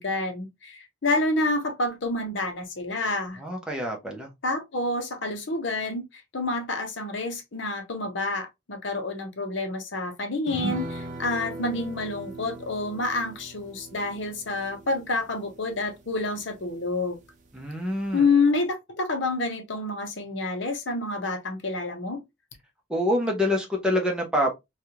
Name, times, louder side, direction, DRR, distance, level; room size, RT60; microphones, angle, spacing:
voice 1, 0.0-3.4 4.4-17.2 18.1-22.2, left 3 dB, 65° left, 0.8 m, -28 dB
voice 2, 3.4-4.3 17.5-18.2 22.9-24.5, left 1 dB, 5° right, 0.7 m, -26 dB
sound 1, 10.5-17.3 17.6-17.7 18.0-18.2, right 1 dB, 40° right, 0.7 m, -39 dB
3.2 x 2.3 x 2.8 m
head